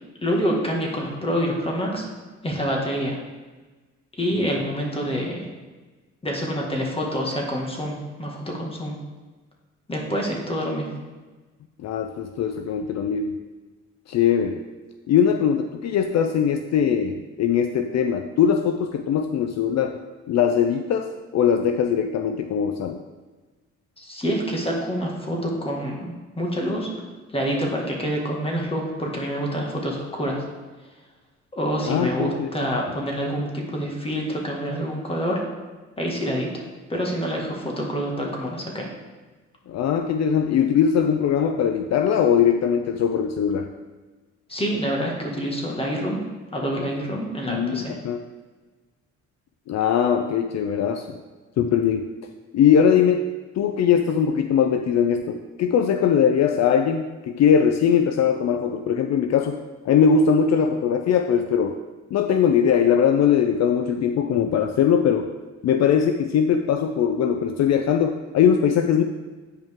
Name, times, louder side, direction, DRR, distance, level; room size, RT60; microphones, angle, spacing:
voice 1, 0.2-2.1 2.4-3.2 4.1-5.5 6.2-9.0 9.9-10.9 24.0-26.9 27.3-30.4 31.5-35.4 36.0-36.6 36.9-38.9 44.5-46.2 46.5-48.0, equal, 20° left, -1 dB, 1.8 m, -27 dB
voice 2, 11.8-13.4 14.1-14.6 15.1-20.0 20.3-23.0 31.9-32.7 39.7-43.7 47.5-48.2 49.7-51.2 51.6-52.1 52.5-53.2 53.6-61.8 62.1-65.3 65.6-69.0, left 7 dB, 60° left, 6 dB, 0.5 m, -21 dB
8.9 x 5.4 x 3.6 m, 1.3 s
cardioid pair, 90°, 30 cm